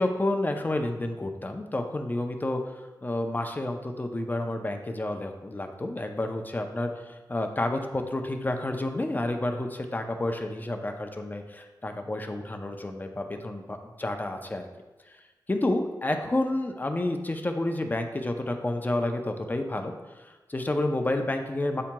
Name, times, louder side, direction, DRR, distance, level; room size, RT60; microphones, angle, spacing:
voice 1, 0.0-2.6 3.0-14.6 15.5-19.9 20.2-21.8, left 1 dB, 25° left, 5 dB, 0.5 m, -30 dB
8.3 x 2.8 x 2.2 m, 1.2 s
wide cardioid pair, 75°, 8 cm